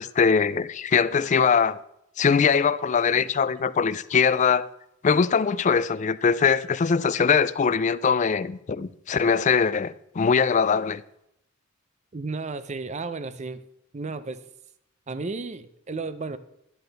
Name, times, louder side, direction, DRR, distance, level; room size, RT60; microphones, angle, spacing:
voice 1, 0.0-1.8 2.2-4.7 5.0-11.0, left 6 dB, 35° left, 0.4 m, -22 dB
voice 2, 12.1-13.6 13.9-14.4 15.1-16.4, right 3 dB, 35° right, 0.5 m, -33 dB
12.0 x 10.5 x 3.4 m
head